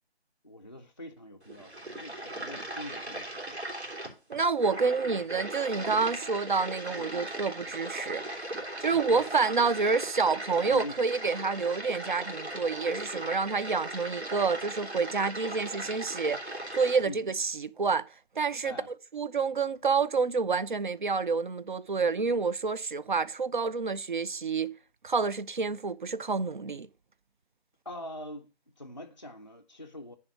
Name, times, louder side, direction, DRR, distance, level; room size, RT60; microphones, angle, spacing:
voice 1, 0.4-3.6 5.7-6.0 7.0-7.3 8.8-9.3 10.7-11.0 17.0-17.3 18.6-18.9 27.9-30.2, left 1 dB, 30° left, 0.4 m, -44 dB
sound 1, 1.4-17.0, right 1 dB, 80° right, 3.2 m, -38 dB
voice 2, 4.3-18.1 18.4-24.7 25.0-26.9, right 4 dB, 50° right, 0.5 m, -28 dB
10.0 x 3.5 x 6.8 m
figure-of-eight pair, 165°, 32 cm